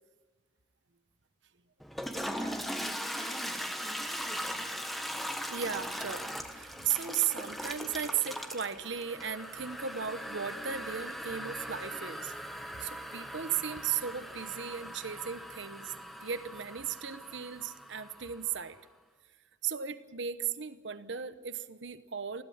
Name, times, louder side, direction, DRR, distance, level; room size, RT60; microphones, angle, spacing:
Toilet flush, 1.8-18.6, equal, ahead, 1.3 m, -40 dB
voice 1, 2.2-4.7, left 1 dB, 25° left, 2 dB, 2.9 m, -49 dB
voice 2, 5.5-12.3 12.7-15.9 16.2-18.8 19.6-22.4, right 8 dB, 70° right, 12 dB, 1.0 m, -36 dB
20.5 x 16.0 x 8.8 m, 1.3 s
head